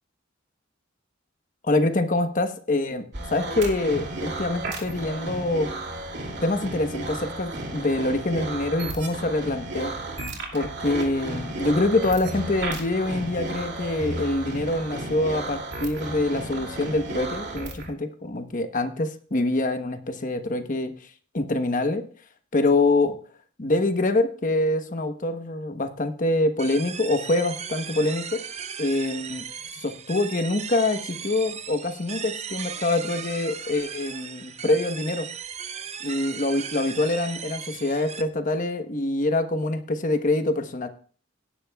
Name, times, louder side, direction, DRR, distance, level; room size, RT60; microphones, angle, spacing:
voice 1, 1.6-3.0 3.3-5.7 6.4-10.0 10.5-20.9 21.3-22.1 22.5-23.2 23.6-28.4 28.8-29.4 29.8-35.3 36.0-40.9, left 2 dB, 40° left, 7 dB, 1.1 m, -25 dB
sound 1, 3.1-17.9, right 2 dB, 60° right, 2.6 m, -33 dB
sound 2, 26.6-38.2, right 7 dB, 35° right, 0.6 m, -37 dB
17.5 x 10.5 x 2.3 m, 0.43 s
head